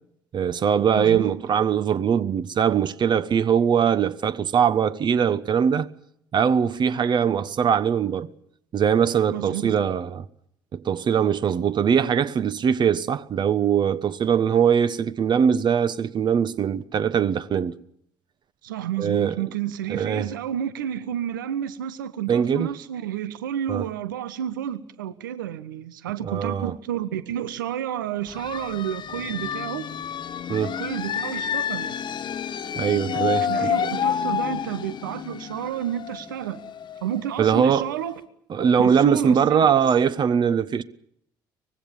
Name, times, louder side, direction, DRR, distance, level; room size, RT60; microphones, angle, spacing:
voice 1, 0.3-5.9 6.3-8.3 8.7-10.2 10.7-17.7 19.0-19.4 19.9-20.3 22.3-22.7 23.7-23.8 26.2-26.7 30.5-30.8 32.8-33.7 37.4-37.9 38.5-40.8, right 7 dB, 45° right, 1.2 m, -21 dB
voice 2, 1.0-1.4 9.3-9.7 18.6-29.9 30.8-31.9 33.1-36.6 37.0-38.2 38.6-39.8, right 10 dB, 85° right, 1.1 m, -30 dB
sound 1, 28.3-37.8, left 8 dB, 45° left, 1.4 m, -29 dB
24.5 x 21.0 x 7.3 m
hypercardioid pair, 55°, 11 cm